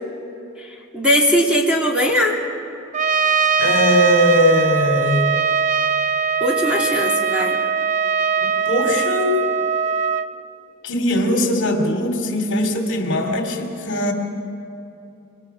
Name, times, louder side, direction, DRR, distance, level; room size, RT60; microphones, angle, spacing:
voice 1, 0.9-2.4 6.4-7.6, equal, 5° right, -1 dB, 2.6 m, -19 dB
Trumpet, 2.9-10.3, right 6 dB, 35° right, 0.6 m, -20 dB
voice 2, 3.6-5.3 8.4-9.3 10.8-14.1, left 1 dB, 55° left, 4 dB, 2.9 m, -20 dB
27.0 x 24.5 x 6.1 m, 2.7 s
head